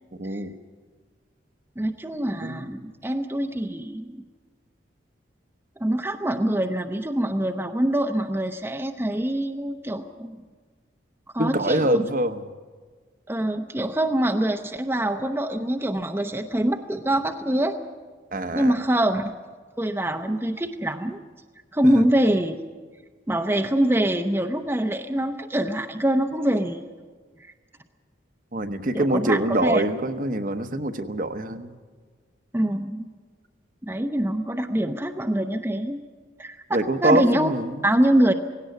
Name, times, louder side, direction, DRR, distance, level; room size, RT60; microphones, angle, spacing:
voice 1, 0.2-0.5 2.4-2.7 11.4-12.4 18.3-18.7 28.5-31.7 36.7-37.7, right 1 dB, 45° right, 8 dB, 1.0 m, -24 dB
voice 2, 1.8-4.2 5.8-10.4 11.3-12.1 13.3-17.8 18.5-19.3 19.8-21.2 21.7-22.6 23.3-26.8 27.4-27.5 28.9-29.8 32.5-33.1 33.8-36.0 36.4-36.6 37.0-37.5 37.8-38.3, right 1 dB, 10° right, 4 dB, 0.7 m, -24 dB
18.0 x 17.0 x 9.4 m, 1.5 s
head